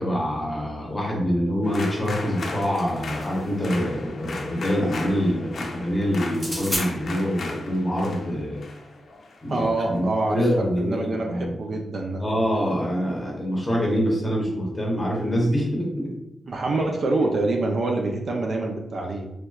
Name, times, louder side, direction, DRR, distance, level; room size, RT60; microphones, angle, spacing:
voice 1, 0.0-8.6 9.4-11.5 12.2-16.1, equal, 15° left, -2 dB, 0.9 m, -25 dB
sound 1, 1.6-10.0, left 3 dB, 60° left, 0.5 m, -37 dB
sound 2, 2.6-3.5 6.3-6.9, equal, 5° right, 1.5 m, -32 dB
voice 2, 9.5-12.2 16.4-19.3, right 2 dB, 55° right, 2 dB, 0.4 m, -26 dB
3.3 x 2.9 x 2.3 m, 0.90 s
wide cardioid pair, 125°, 0 cm